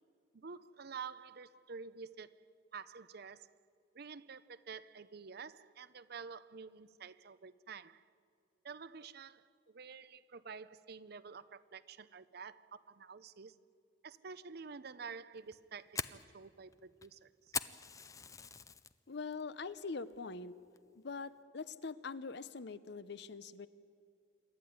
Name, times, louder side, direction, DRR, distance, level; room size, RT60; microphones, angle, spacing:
voice 1, 0.3-2.4 2.7-3.5 3.9-8.0 8.6-13.6 14.0-17.3, right 5 dB, 55° right, 16 dB, 0.6 m, -49 dB
Fire, 15.4-18.9 19.3-19.7 20.1-20.2 20.8-21.1, left 5 dB, 15° left, 0.5 m, -42 dB
voice 2, 19.1-20.5 20.9-23.7, left 4 dB, 60° left, 15 dB, 0.7 m, -43 dB
27.0 x 12.5 x 9.5 m, 2.5 s
head